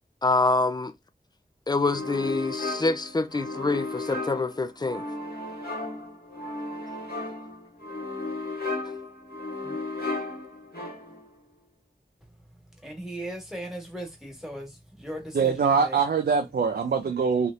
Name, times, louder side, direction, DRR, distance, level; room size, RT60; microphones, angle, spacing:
voice 1, 0.2-0.9 1.7-5.0 9.6-9.8, left 3 dB, 25° left, 0.4 m, -26 dB
sound 1, 1.8-11.3, left 2 dB, 90° left, 1.3 m, -35 dB
voice 2, 12.8-16.0, right 1 dB, 5° right, 1.4 m, -38 dB
voice 3, 15.3-17.5, right 5 dB, 85° right, 0.4 m, -23 dB
3.3 x 2.8 x 2.5 m
wide cardioid pair, 70°, 16 cm